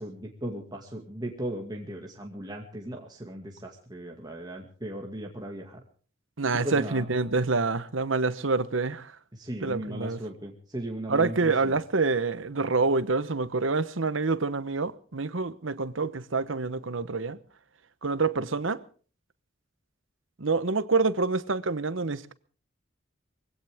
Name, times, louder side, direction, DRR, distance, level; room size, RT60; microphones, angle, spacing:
voice 1, 0.0-5.8 6.5-7.1 9.3-11.7, right 1 dB, 20° right, 2.2 m, -37 dB
voice 2, 6.4-9.2 9.6-10.2 11.1-17.4 18.0-18.8 20.4-22.3, right 3 dB, 75° right, 1.1 m, -27 dB
22.0 x 17.0 x 3.6 m
head